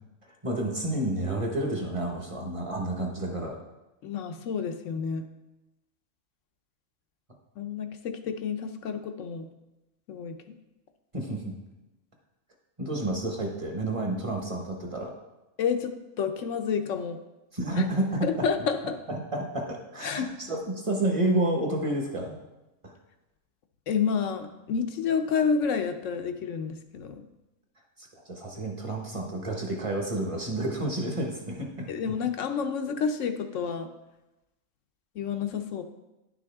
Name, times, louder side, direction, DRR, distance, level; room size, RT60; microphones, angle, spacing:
voice 1, 0.3-3.6 11.1-11.6 12.8-15.1 17.5-18.5 19.1-22.4 22.8-22.9 28.0-32.1, right 1 dB, 25° right, 1 dB, 1.2 m, -30 dB
voice 2, 4.0-5.2 7.6-9.5 10.1-10.6 15.6-17.2 17.7-17.8 18.2-19.0 20.0-20.2 23.9-27.2 31.9-33.9 35.1-35.8, left 6 dB, 70° left, 7 dB, 1.0 m, -29 dB
10.5 x 6.1 x 3.5 m, 0.99 s
omnidirectional pair, 1.4 m